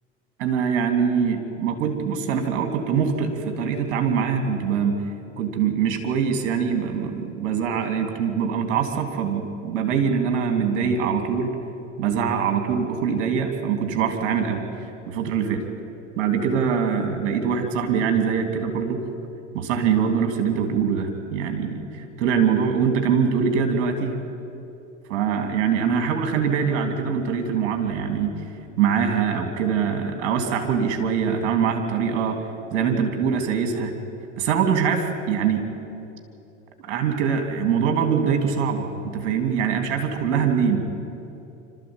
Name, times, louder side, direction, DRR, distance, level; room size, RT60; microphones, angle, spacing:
voice 1, 0.4-5.0 5.4-11.5 12.0-14.6 15.1-15.6 16.2-19.0 19.5-24.1 25.1-28.3 28.8-32.4 32.7-33.9 34.4-35.7 36.8-40.8, right 6 dB, 65° right, 5 dB, 3.3 m, -23 dB
27.0 x 13.5 x 9.0 m, 2.9 s
hypercardioid pair, 85°, 37 cm